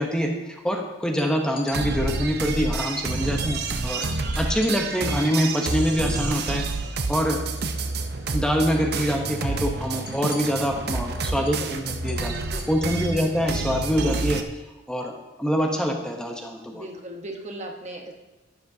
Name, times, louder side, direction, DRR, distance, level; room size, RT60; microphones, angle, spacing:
voice 1, 0.0-6.7 7.1-7.4 8.3-12.4 12.7-14.4 14.9-16.9, equal, 5° left, 1 dB, 0.9 m, -25 dB
sound 1, 1.1-1.8 3.2-3.3 3.6-3.7 4.0-6.8 7.1-8.3 8.5-8.9 9.2-13.3, left 5 dB, 50° left, 1.9 m, -45 dB
sound 2, 1.7-14.4, right 3 dB, 55° right, 0.7 m, -28 dB
voice 2, 3.1-3.5 9.0-9.1 10.8-11.0 11.2-11.8 12.4-13.1 16.7-18.1, right 1 dB, 35° right, 2 dB, 1.1 m, -39 dB
11.5 x 10.5 x 2.8 m, 1.0 s
head